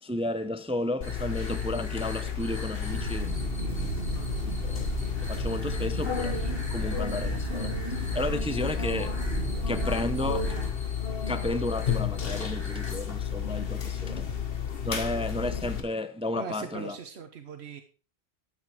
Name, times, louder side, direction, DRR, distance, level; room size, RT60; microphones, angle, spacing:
voice 1, 0.0-4.0 4.4-4.9 5.2-6.4 6.7-9.2 9.7-10.6 11.3-14.3 14.8-17.0, left 1 dB, 5° right, 0.6 m, -33 dB
sound 1, 1.0-15.8, left 7 dB, 65° left, 1.6 m, -32 dB
sound 2, 1.0-13.0, left 1 dB, 25° left, 2.7 m, -46 dB
sound 3, 2.9-10.7, right 3 dB, 65° right, 2.2 m, -34 dB
voice 2, 16.3-17.8, right 6 dB, 85° right, 1.2 m, -40 dB
12.5 x 8.2 x 4.6 m
omnidirectional pair, 1.1 m